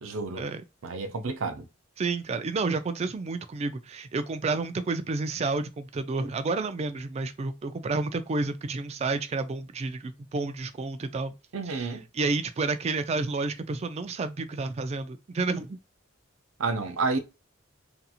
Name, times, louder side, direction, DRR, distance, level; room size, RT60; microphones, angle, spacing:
voice 1, 0.0-0.4 0.8-1.6 11.5-12.0 16.6-17.2, right 4 dB, 80° right, 0.5 m, -30 dB
voice 2, 2.0-11.3 11.7-15.8, right 3 dB, 30° right, 0.3 m, -30 dB
2.8 x 2.5 x 2.3 m
head